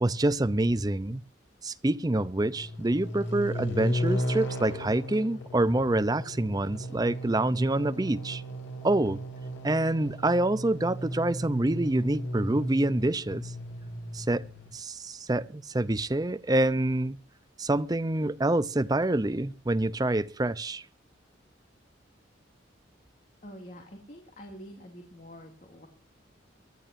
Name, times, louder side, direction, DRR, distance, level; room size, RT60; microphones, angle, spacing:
voice 1, 0.0-1.2 1.6-8.4 8.8-9.2 9.6-13.5 14.1-14.4 14.7-17.2 17.6-20.8, right 1 dB, 20° right, 0.6 m, -26 dB
sound 1, 2.4-14.7, equal, 80° left, 5.3 m, -35 dB
voice 2, 23.4-25.9, equal, 40° left, 2.6 m, -46 dB
24.0 x 12.0 x 2.6 m
head